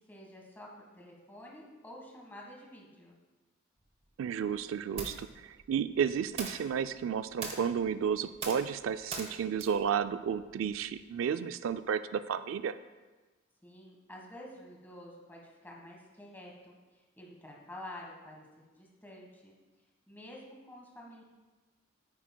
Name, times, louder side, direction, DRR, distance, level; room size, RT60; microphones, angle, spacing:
voice 1, 0.1-0.7 0.9-3.2 13.6-18.4 18.8-19.5 20.1-21.2, left 1 dB, 10° left, -2 dB, 1.4 m, -49 dB
sound 1, 3.8-11.0, right 3 dB, 30° right, 0.9 m, -45 dB
voice 2, 4.2-12.8, right 7 dB, 90° right, 13 dB, 0.3 m, -32 dB
9.7 x 9.0 x 2.2 m, 1.2 s
head